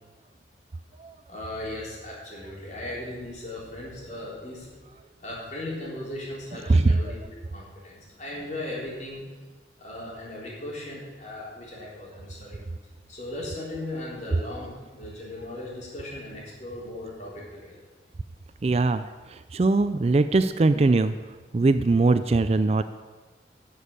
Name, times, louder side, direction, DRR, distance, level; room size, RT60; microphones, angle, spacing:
voice 1, 1.3-4.8 5.2-7.2 7.5-9.2 9.8-12.6 13.1-17.8, left 1 dB, 40° left, -5 dB, 4.0 m, -37 dB
voice 2, 6.7-7.1 18.6-21.1 21.5-22.8, right 3 dB, 35° right, 11 dB, 0.4 m, -21 dB
12.0 x 6.5 x 8.8 m, 1.3 s
head